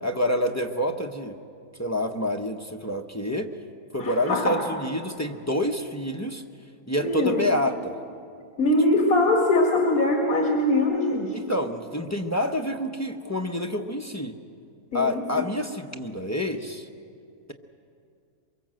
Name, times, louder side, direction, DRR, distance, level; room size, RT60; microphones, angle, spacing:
voice 1, 0.0-1.4 1.8-3.5 3.9-6.4 6.9-8.0 11.3-14.4 14.9-16.9, left 1 dB, 15° left, 4 dB, 0.7 m, -28 dB
voice 2, 4.0-4.6 7.0-7.4 8.6-11.4 14.9-15.2, left 2 dB, 75° left, 1 dB, 2.4 m, -22 dB
23.5 x 23.0 x 7.6 m, 2.4 s
omnidirectional pair, 1.6 m